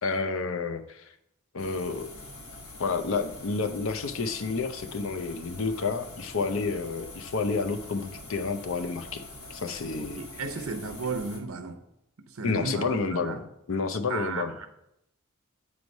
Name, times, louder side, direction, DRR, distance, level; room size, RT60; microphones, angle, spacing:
voice 1, 0.0-1.1 1.5-2.1 2.8-9.2 9.5-10.2 12.4-13.4 13.7-14.5, left 4 dB, 65° left, 9 dB, 0.6 m, -30 dB
sound 1, 1.6-11.4, left 2 dB, 80° left, 1.2 m, -44 dB
voice 2, 10.0-11.8 12.2-13.4 14.1-14.7, right 4 dB, 80° right, 8 dB, 0.7 m, -34 dB
8.3 x 3.1 x 5.2 m, 0.81 s
head